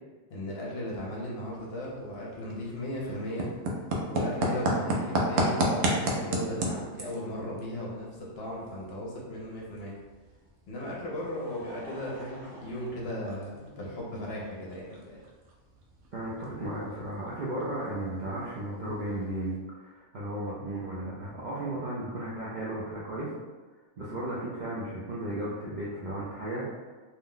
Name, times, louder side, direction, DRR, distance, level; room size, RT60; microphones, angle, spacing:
voice 1, 0.3-3.5 4.1-9.9 10.7-15.2, left 1 dB, 60° left, -4 dB, 0.8 m, -36 dB
sound 1, 1.4-19.6, right 1 dB, 80° right, 0.9 m, -35 dB
Laughter, 10.9-13.9 14.8-14.9 16.3-16.4, equal, 5° left, 0.4 m, -50 dB
voice 2, 16.1-23.3 24.0-26.6, right 1 dB, 60° right, -7 dB, 0.5 m, -35 dB
2.6 x 2.1 x 3.7 m, 1.3 s
omnidirectional pair, 1.3 m